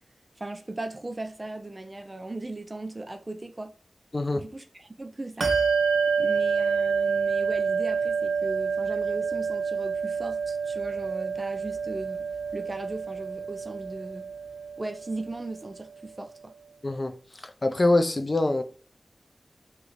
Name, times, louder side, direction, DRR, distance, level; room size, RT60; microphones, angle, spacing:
voice 1, 0.4-3.8 4.3-5.5 6.2-14.3 14.8-16.5, right 2 dB, 30° right, 0.5 m, -38 dB
Bell, 5.4-15.4, right 5 dB, 80° right, 0.5 m, -28 dB
voice 2, 16.8-17.2 17.6-18.6, left 2 dB, 40° left, 0.4 m, -24 dB
3.1 x 2.5 x 3.0 m
wide cardioid pair, 75°, 0 cm